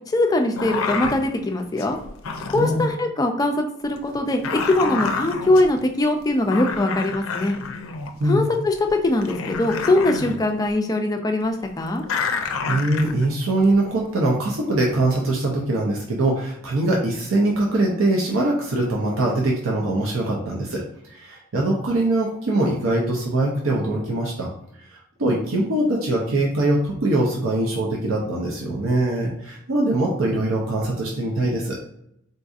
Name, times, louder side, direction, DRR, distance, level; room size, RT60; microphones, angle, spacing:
voice 1, 0.1-2.0 2.5-7.6 8.2-12.0, left 2 dB, 20° left, 4 dB, 0.3 m, -22 dB
sound 1, 0.6-1.3 1.8-2.9 3.9-5.7 6.2-6.3 6.5-8.2 8.9-9.0 9.2-10.4 12.0-13.7 14.9-15.3, left 4 dB, 85° left, 0.4 m, -28 dB
voice 2, 2.6-2.9 8.2-8.4 12.7-20.8 21.1-24.5 24.8-31.8, right 2 dB, 80° right, -2 dB, 0.6 m, -22 dB
3.8 x 2.6 x 2.4 m, 0.77 s
head